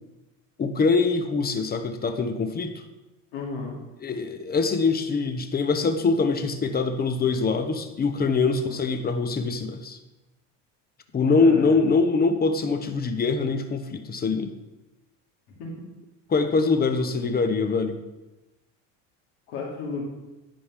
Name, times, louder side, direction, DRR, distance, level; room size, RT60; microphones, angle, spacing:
voice 1, 0.6-2.8 4.0-10.0 11.1-14.5 16.3-18.0, left 4 dB, 25° left, 8 dB, 0.7 m, -23 dB
voice 2, 3.3-3.8 8.6-8.8 11.3-11.8 15.6-15.9 19.5-20.0, left 3 dB, 75° left, -3 dB, 2.6 m, -33 dB
9.3 x 5.1 x 3.6 m, 1.0 s
supercardioid pair, 95°, 39 cm